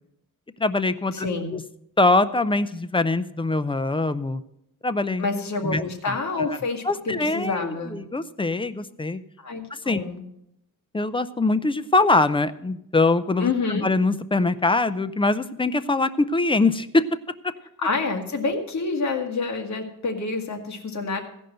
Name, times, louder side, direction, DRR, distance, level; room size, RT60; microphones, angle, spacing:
voice 1, 0.6-1.6 2.0-4.4 4.8-5.3 5.6-6.2 6.8-9.2 9.7-10.0 10.9-13.5 13.8-17.0 17.4-17.5, left 2 dB, 15° left, 12 dB, 0.4 m, -23 dB
voice 2, 1.1-1.6 5.2-8.0 9.4-10.2 13.4-13.9 17.8-21.2, left 3 dB, 50° left, 3 dB, 1.8 m, -28 dB
15.5 x 5.4 x 7.7 m, 0.79 s
cardioid pair, 115°, 35 cm